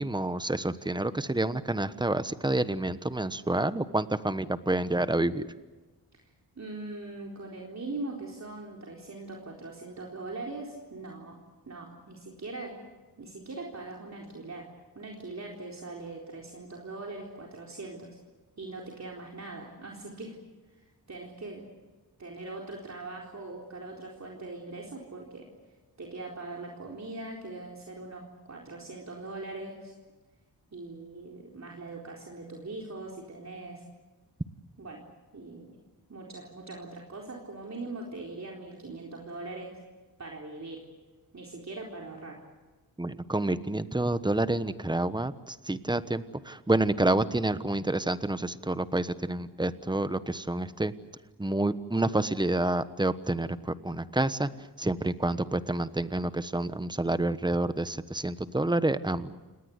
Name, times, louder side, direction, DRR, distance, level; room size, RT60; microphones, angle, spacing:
voice 1, 0.0-5.5 43.0-50.9 51.4-54.5 54.8-59.3, right 2 dB, 10° right, 13 dB, 1.2 m, -28 dB
voice 2, 6.6-11.4 11.7-12.8 13.2-14.7 14.9-18.2 18.6-20.4 21.1-21.7 22.2-25.5 26.0-29.9 30.7-33.8 34.8-35.0 35.3-35.8 36.1-39.8 40.2-40.9 41.3-42.4, right 2 dB, 45° right, -1 dB, 4.1 m, -41 dB
29.0 x 19.5 x 8.2 m, 1.2 s
cardioid pair, 70°, 39 cm